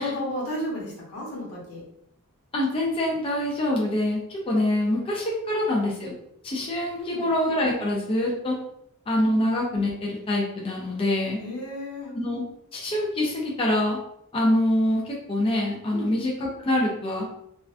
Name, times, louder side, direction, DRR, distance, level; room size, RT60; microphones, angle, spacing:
voice 1, 0.0-1.8 7.0-7.2 9.2-9.4 11.4-12.1 15.9-16.1, left 1 dB, 85° left, -4 dB, 1.0 m, -33 dB
voice 2, 2.5-6.1 6.4-8.6 9.1-11.4 12.1-12.4 12.7-14.0 14.3-17.2, left 1 dB, 25° left, -3 dB, 0.4 m, -25 dB
2.4 x 2.2 x 2.4 m, 0.76 s
head